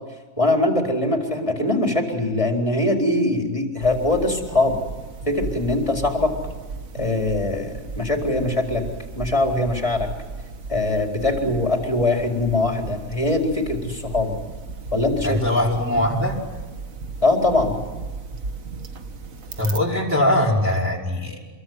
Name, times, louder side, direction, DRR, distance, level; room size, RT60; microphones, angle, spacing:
voice 1, 0.4-4.8 5.3-6.3 6.9-8.8 9.2-10.1 10.7-14.4 14.9-15.5 17.2-17.8, left 2 dB, 20° left, 2 dB, 4.3 m, -22 dB
sound 1, 3.8-19.8, right 4 dB, 70° right, 1.9 m, -35 dB
voice 2, 15.2-16.4 19.6-21.4, left 1 dB, 10° right, -3 dB, 5.4 m, -21 dB
27.5 x 22.5 x 9.6 m, 1.2 s
omnidirectional pair, 1.5 m